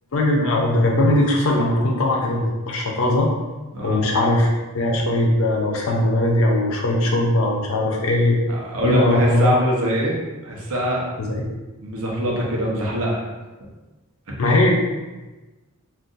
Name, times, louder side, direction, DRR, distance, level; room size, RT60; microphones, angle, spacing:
voice 1, 0.1-3.3 3.8-4.5 4.7-8.4 8.8-9.6 11.2-11.4 14.4-14.7, left 1 dB, 70° left, -1 dB, 0.6 m, -19 dB
voice 2, 3.7-4.0 8.5-10.1 10.4-11.1 11.8-13.2 14.3-14.4, equal, 75° right, -3 dB, 0.8 m, -23 dB
2.5 x 2.4 x 3.8 m, 1.2 s
head